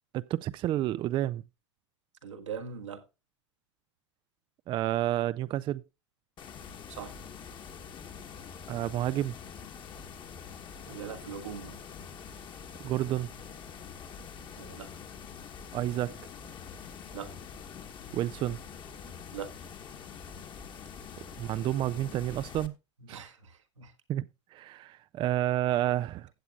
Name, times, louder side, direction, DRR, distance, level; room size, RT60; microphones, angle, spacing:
voice 1, 0.1-1.4 4.7-5.8 8.7-9.4 12.8-13.3 15.7-16.2 18.1-18.6 21.4-22.7 23.1-23.3 24.1-26.3, right 13 dB, 35° right, 0.4 m, -30 dB
voice 2, 2.2-3.0 6.9-7.2 10.9-11.8 14.6-14.9 17.1-17.3 19.3-19.5 23.0-23.9, right 7 dB, 85° right, 1.7 m, -41 dB
sound 1, 6.4-22.7, left 6 dB, 30° left, 1.4 m, -45 dB
15.5 x 8.1 x 2.3 m
hypercardioid pair, 100°, 15 cm